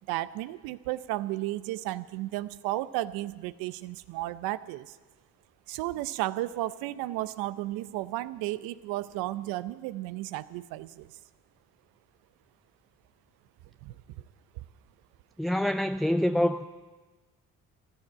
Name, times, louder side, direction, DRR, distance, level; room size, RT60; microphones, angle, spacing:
voice 1, 0.1-4.9 5.7-11.1 13.8-13.9, right 16 dB, 80° right, 16 dB, 0.7 m, -33 dB
voice 2, 15.4-16.7, left 1 dB, ahead, 10 dB, 0.4 m, -26 dB
14.5 x 12.0 x 7.5 m, 1.3 s
supercardioid pair, 70°, 35 cm